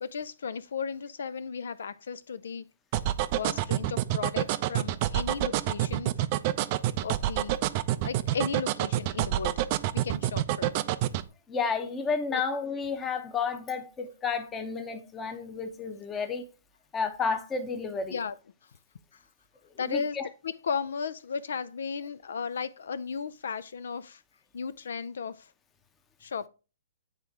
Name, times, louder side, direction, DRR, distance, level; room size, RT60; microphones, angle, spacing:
voice 1, 0.0-2.7 3.3-6.1 7.0-7.6 8.0-9.6 10.0-10.7 12.3-12.4 18.1-18.3 19.1-19.2 19.8-20.2 20.4-24.2 24.5-25.5 26.2-26.5, left 6 dB, 75° left, 0.4 m, -35 dB
sound 1, 2.9-11.2, right 14 dB, 40° right, 0.4 m, -27 dB
voice 2, 11.5-16.5 16.9-18.2 19.9-20.3, left 5 dB, 15° left, 0.8 m, -31 dB
8.7 x 3.5 x 3.5 m
hypercardioid pair, 140°, 0 cm